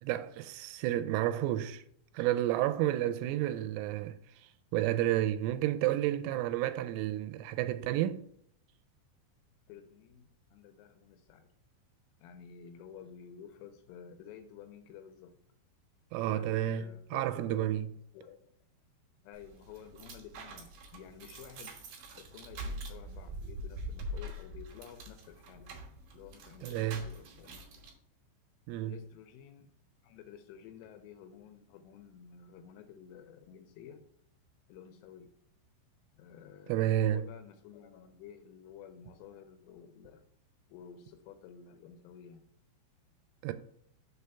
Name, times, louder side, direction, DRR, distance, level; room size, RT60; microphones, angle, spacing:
voice 1, 0.0-1.8 2.1-4.2 4.7-8.3 16.1-17.9 26.6-27.1 28.7-29.0 36.7-37.3 43.4-43.5, right 13 dB, 85° right, 3.1 m, -31 dB
voice 2, 5.6-6.0 9.7-11.5 12.2-15.3 16.3-18.4 19.2-21.8 22.2-25.7 26.1-27.6 28.8-29.7 30.0-34.0 34.7-35.3 36.1-40.2 40.7-42.4, left 8 dB, 85° left, 3.2 m, -52 dB
sound 1, 19.3-27.9, right 1 dB, 65° right, 2.1 m, -44 dB
7.0 x 3.4 x 5.5 m
omnidirectional pair, 5.7 m